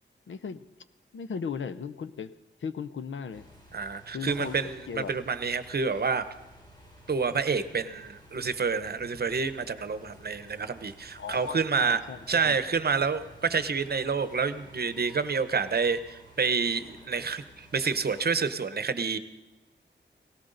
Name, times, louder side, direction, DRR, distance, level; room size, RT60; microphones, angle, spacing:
voice 1, 0.3-0.7 1.1-2.3 2.6-3.5 4.1-4.6 4.9-5.1 11.2-12.6, left 6 dB, 80° left, 14 dB, 0.7 m, -36 dB
sound 1, 3.3-18.3, equal, 20° left, 2.9 m, -53 dB
voice 2, 3.7-6.3 7.1-12.0 12.3-19.2, right 5 dB, 55° right, 12 dB, 0.8 m, -28 dB
18.5 x 17.5 x 3.9 m, 1.0 s
wide cardioid pair, 120°, 20 cm